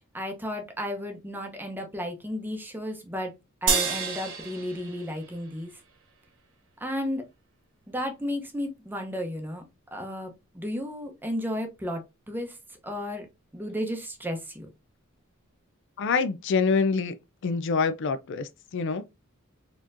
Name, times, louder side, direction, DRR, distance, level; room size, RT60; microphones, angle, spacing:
voice 1, 0.1-3.3 3.6-5.7 6.8-7.2 7.9-9.6 9.9-12.6 12.8-13.3 13.5-14.7, equal, 10° right, 0.7 m, -33 dB
sound 1, 3.7-6.3, right 6 dB, 70° right, 0.9 m, -30 dB
voice 2, 16.0-17.1 17.4-19.0, left 4 dB, 60° left, 0.4 m, -26 dB
4.2 x 2.9 x 2.5 m
head